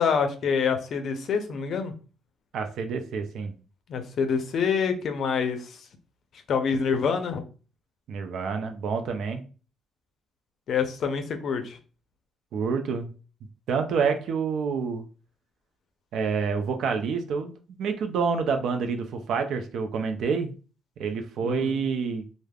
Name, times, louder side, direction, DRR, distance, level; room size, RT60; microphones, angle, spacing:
voice 1, 0.0-1.9 3.9-5.8 6.5-7.4 10.7-11.8 21.4-21.8, left 6 dB, 60° left, 7 dB, 0.5 m, -26 dB
voice 2, 2.5-3.5 8.1-9.4 12.5-13.1 13.7-15.0 16.1-17.5 17.8-20.5 21.0-22.2, right 5 dB, 70° right, 6 dB, 0.4 m, -28 dB
3.3 x 2.0 x 2.2 m, 0.36 s
supercardioid pair, 75°, 0 cm